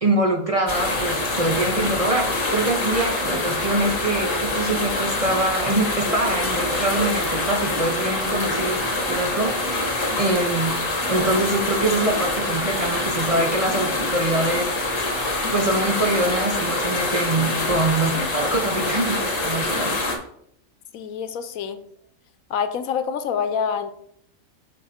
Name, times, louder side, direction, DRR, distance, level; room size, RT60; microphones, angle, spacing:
voice 1, 0.0-8.8 9.1-10.8 11.1-15.1 15.5-20.0, right 2 dB, 30° right, 2 dB, 0.8 m, -24 dB
sound 1, 0.7-20.2, left 2 dB, 65° left, 1.8 m, -25 dB
voice 2, 20.9-21.8 22.5-23.9, left 7 dB, 85° left, 10 dB, 1.1 m, -26 dB
7.1 x 4.6 x 4.3 m, 0.71 s
omnidirectional pair, 1.4 m